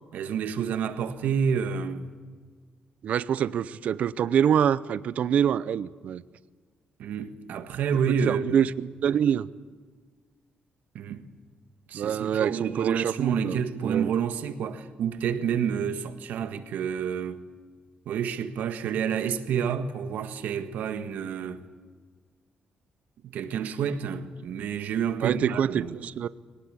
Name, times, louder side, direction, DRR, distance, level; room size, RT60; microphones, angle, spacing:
voice 1, 0.1-2.1 7.0-8.6 10.9-11.2 11.9-17.4 18.0-21.6 23.2-25.9, right 7 dB, 70° right, 1.6 m, -29 dB
voice 2, 3.0-6.2 8.3-9.5 11.9-14.1 25.2-26.3, right 8 dB, 50° right, 0.6 m, -25 dB
22.0 x 19.0 x 9.9 m
cardioid pair, 170°, 3 cm